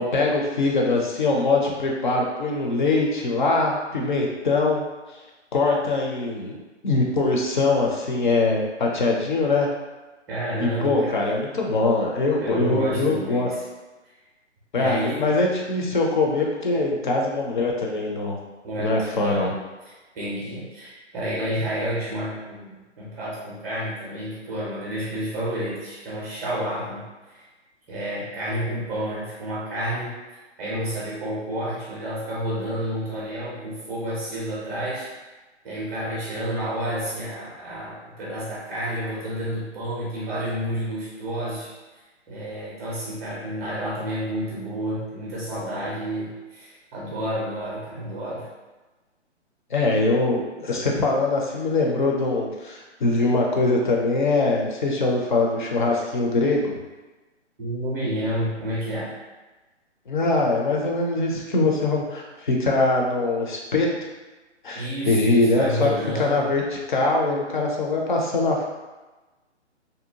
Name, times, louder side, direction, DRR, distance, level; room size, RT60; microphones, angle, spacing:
voice 1, 0.0-4.8 5.5-6.5 6.8-9.7 10.6-13.5 14.7-18.4 18.8-19.5 49.7-56.7 60.1-63.9 64.6-65.9 66.2-68.6, left 3 dB, 45° left, -1 dB, 0.5 m, -22 dB
voice 2, 10.3-11.2 12.4-13.6 14.7-15.3 18.6-19.5 19.9-27.5 27.9-30.2 30.6-35.1 35.6-41.7 42.3-48.5 57.6-59.1 64.7-66.4, right 1 dB, 15° right, -6 dB, 0.5 m, -30 dB
2.7 x 2.1 x 2.7 m, 1.2 s
figure-of-eight pair, 140°, 36 cm